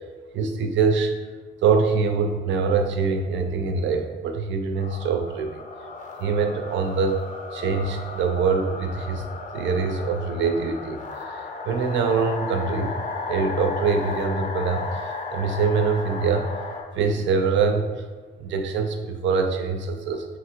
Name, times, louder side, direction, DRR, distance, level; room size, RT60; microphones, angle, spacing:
voice 1, 0.3-1.1 1.6-5.6 6.2-7.2 7.5-9.2 9.5-11.0 11.6-12.9 13.3-16.5 16.9-17.9 18.4-20.3, right 5 dB, 70° right, 6 dB, 0.4 m, -24 dB
sound 1, 4.8-16.8, left 4 dB, 40° left, 0.5 m, -34 dB
3.0 x 2.4 x 2.9 m, 1.4 s
cardioid pair, 90°, 20 cm